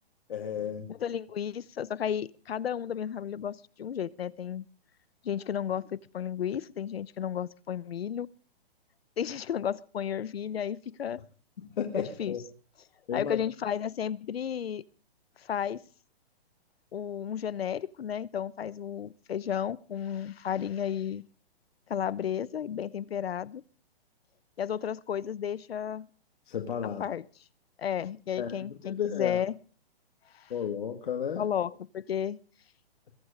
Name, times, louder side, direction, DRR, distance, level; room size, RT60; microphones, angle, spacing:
voice 1, 0.3-0.9 11.6-12.4 13.1-13.4 26.5-27.0 28.4-28.5 28.8-29.4 30.5-31.5, left 8 dB, 55° left, 2.2 m, -33 dB
voice 2, 0.9-4.6 5.2-8.3 9.2-11.2 12.0-12.3 13.1-14.8 15.4-15.9 16.9-21.2 21.9-23.6 24.6-26.1 27.0-27.2 27.8-29.6 30.3-30.5 31.4-32.4, left 9 dB, 75° left, 0.9 m, -33 dB
22.5 x 9.7 x 5.1 m
hypercardioid pair, 170°, 31 cm